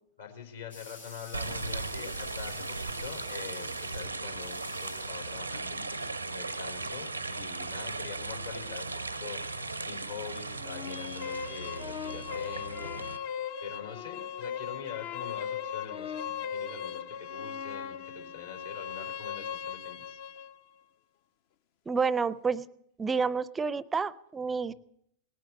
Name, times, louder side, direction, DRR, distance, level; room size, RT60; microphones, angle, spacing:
voice 1, 0.2-13.3 13.6-20.2, left 7 dB, 70° left, 2 dB, 4.1 m, -45 dB
sound 1, 0.7-5.7, left 3 dB, 85° left, 5.4 m, -50 dB
sound 2, 1.3-13.2, right 3 dB, 85° right, 0.7 m, -37 dB
sound 3, 10.6-20.5, left 8 dB, 50° left, 0.7 m, -38 dB
voice 2, 21.9-22.7 23.0-24.7, right 5 dB, 15° right, 20 dB, 0.5 m, -29 dB
19.0 x 9.2 x 7.6 m, 0.73 s
figure-of-eight pair, 90°, 0 cm